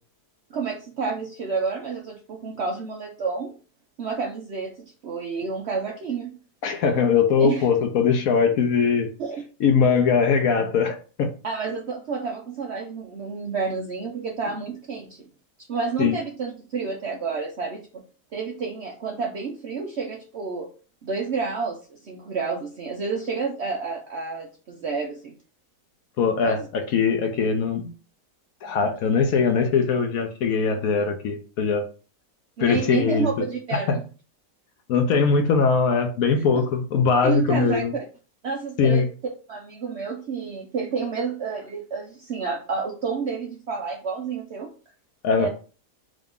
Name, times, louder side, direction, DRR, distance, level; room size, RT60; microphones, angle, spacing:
voice 1, 0.5-3.6 4.0-4.7 5.0-6.3 7.4-7.7 9.2-9.4 9.8-10.0 11.4-15.3 15.7-18.0 18.3-20.7 21.0-25.3 26.4-26.7 32.6-34.0 36.4-36.7 37.2-37.8 38.4-39.0 39.5-44.7 45.4-45.5, right 5 dB, 65° right, 0.7 m, -30 dB
voice 2, 6.6-9.1 9.6-11.3 16.0-16.2 26.2-27.9 28.6-31.8 32.6-33.4 33.7-34.0 34.9-37.9 38.8-39.1 45.2-45.5, left 5 dB, 70° left, 1.0 m, -21 dB
3.8 x 2.5 x 3.6 m
omnidirectional pair, 1.7 m